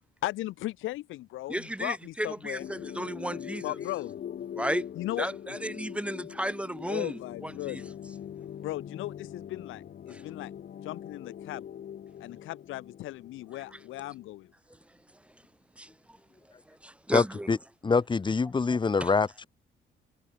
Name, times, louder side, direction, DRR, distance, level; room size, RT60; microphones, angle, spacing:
voice 1, 0.2-2.6 3.6-4.2 4.9-5.3 6.9-7.8 8.6-10.5 10.8-11.7 12.2-14.5, left 16 dB, 85° left, 0.9 m, -37 dB
voice 2, 1.5-3.6 4.6-4.8 5.2-7.8 10.1-10.2 15.8-15.9 16.8-17.5 19.0-19.1, right 1 dB, 5° right, 1.2 m, -33 dB
sound 1, 2.6-14.5, left 9 dB, 50° left, 0.8 m, -42 dB
voice 3, 17.1-17.6 17.8-19.5, left 4 dB, 25° left, 0.9 m, -25 dB
cardioid pair, 90°, 20 cm